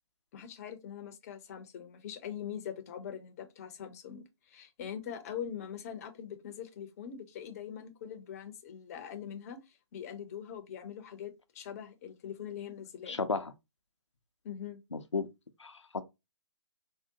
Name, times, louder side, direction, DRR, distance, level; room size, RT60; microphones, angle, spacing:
voice 1, 0.3-9.6 9.9-13.2 14.4-14.8, left 9 dB, 35° left, 0.5 m, -42 dB
voice 2, 13.1-13.5 14.9-15.3 15.6-16.0, left 4 dB, 90° left, 0.5 m, -34 dB
3.6 x 2.1 x 2.6 m
figure-of-eight pair, 130°, 15 cm